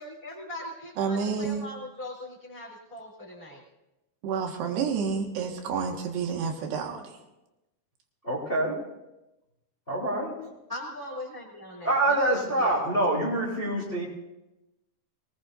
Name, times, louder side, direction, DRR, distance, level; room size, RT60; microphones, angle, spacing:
voice 1, 0.0-3.6 10.7-12.2 12.6-12.8 13.1-13.2, left 1 dB, 10° right, -3 dB, 2.9 m, -40 dB
voice 2, 1.0-1.7 4.2-7.0, right 6 dB, 90° right, 3 dB, 3.8 m, -29 dB
voice 3, 8.2-8.8 9.9-10.5 11.8-14.0, right 1 dB, 15° left, -4 dB, 3.0 m, -26 dB
25.0 x 19.5 x 2.7 m, 0.97 s
omnidirectional pair, 4.6 m